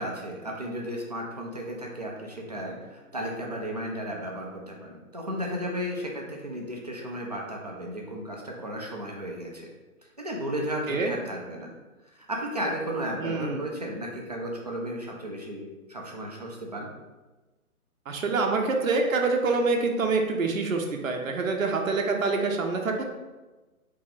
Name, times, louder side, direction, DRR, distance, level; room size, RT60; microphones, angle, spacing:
voice 1, 0.0-9.7 10.2-11.7 12.1-15.6 15.9-16.9, equal, 30° right, -2 dB, 0.4 m, -34 dB
voice 2, 13.2-13.6 18.1-23.0, right 3 dB, 65° right, 2 dB, 0.7 m, -26 dB
3.9 x 2.8 x 3.9 m, 1.2 s
figure-of-eight pair, 135°, 44 cm